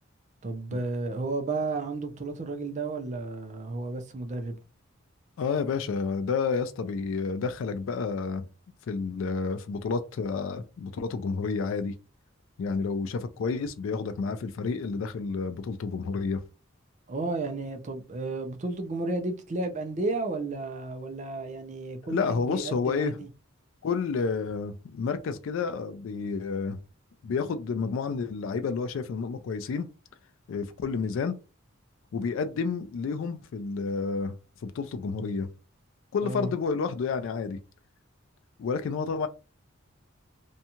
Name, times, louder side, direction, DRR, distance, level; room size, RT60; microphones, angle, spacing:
voice 1, 0.4-4.6 17.1-23.3 36.2-36.5, right 3 dB, 35° right, 0.4 m, -32 dB
voice 2, 5.4-8.5 8.9-11.9 12.6-16.4 22.0-23.2 23.8-26.8 27.2-29.9 30.5-31.4 32.1-34.3 34.6-35.5 36.1-37.6 38.6-39.3, left 5 dB, 70° left, 0.3 m, -30 dB
2.6 x 2.3 x 2.8 m
head